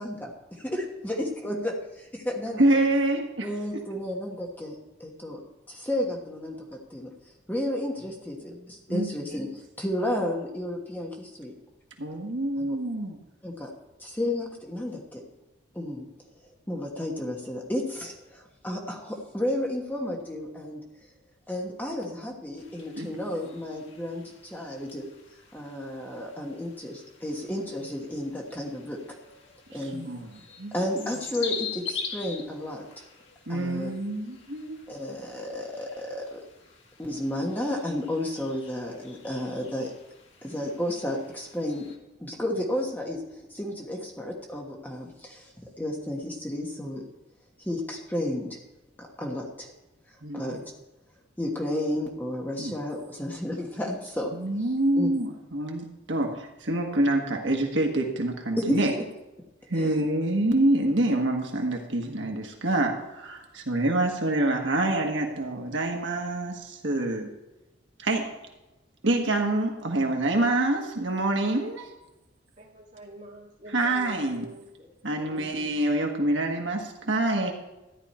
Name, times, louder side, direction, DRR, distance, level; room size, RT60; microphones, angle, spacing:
voice 1, 0.0-1.7 2.2-2.6 3.4-4.7 5.0-5.4 5.7-7.1 7.5-11.5 12.6-12.8 13.4-13.7 14.0-15.2 15.7-16.1 16.7-20.8 21.5-25.0 25.5-29.0 29.7-30.0 30.7-33.0 33.5-33.9 34.9-36.4 37.0-39.9 40.4-41.9 42.2-43.2 43.5-47.0 47.6-48.6 49.0-49.7 50.1-50.6 51.4-54.7 54.9-55.1 58.6-58.8 59.7-60.0, left 1 dB, 10° left, -1 dB, 1.3 m, -32 dB
voice 2, 2.6-3.5 8.9-9.1 12.0-13.2 23.0-23.1 29.7-30.7 33.5-34.8 50.2-50.5 52.6-52.7 54.4-58.9 59.7-67.3 68.0-68.3 69.0-71.9 73.7-74.4 75.0-77.5, right 1 dB, 70° right, 2 dB, 1.5 m, -26 dB
sound 1, 22.6-42.0, left 6 dB, 75° left, 2.1 m, -44 dB
voice 3, 72.6-74.9 75.2-75.8, right 1 dB, 40° right, -3 dB, 2.9 m, -46 dB
13.5 x 10.5 x 4.3 m, 1.0 s
head